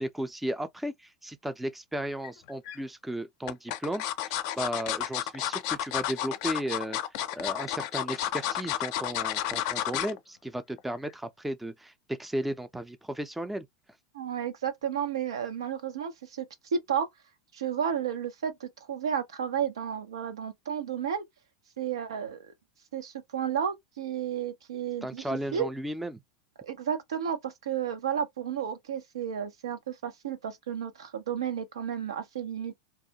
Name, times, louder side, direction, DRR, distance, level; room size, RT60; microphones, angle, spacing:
voice 1, 0.0-4.0 4.6-7.0 7.3-13.7 25.0-26.2, right 1 dB, 5° right, 0.4 m, -34 dB
sound 1, 2.2-2.8 3.5-10.2 10.6-10.8 11.1-11.2, left 12 dB, 60° left, 0.4 m, -31 dB
voice 2, 14.1-17.1 17.5-21.2 21.8-22.5 22.9-25.3 25.5-25.7 26.6-32.8, right 8 dB, 90° right, 0.6 m, -32 dB
2.3 x 2.1 x 2.7 m
hypercardioid pair, 110°, 3 cm